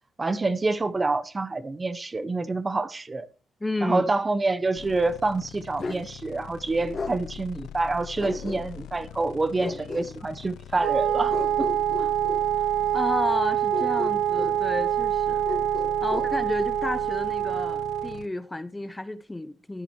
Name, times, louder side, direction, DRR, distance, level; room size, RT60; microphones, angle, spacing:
voice 1, 0.2-3.3 3.8-11.7 12.0-12.1, right 3 dB, 25° right, 0.8 m, -27 dB
voice 2, 3.6-4.1 12.9-15.4 16.0-19.8, left 2 dB, 15° left, 0.7 m, -31 dB
sound 1, 4.8-18.3, left 10 dB, 80° left, 0.5 m, -43 dB
Bark, 5.8-6.1 6.9-7.2 8.2-8.9 9.6-10.1 11.3-12.4 13.7-14.6 15.4-16.3, left 3 dB, 40° left, 2.1 m, -34 dB
Wind instrument woodwind instrument, 10.8-18.2, right 11 dB, 75° right, 0.4 m, -25 dB
14.5 x 9.9 x 3.0 m
cardioid pair, 90°, 0 cm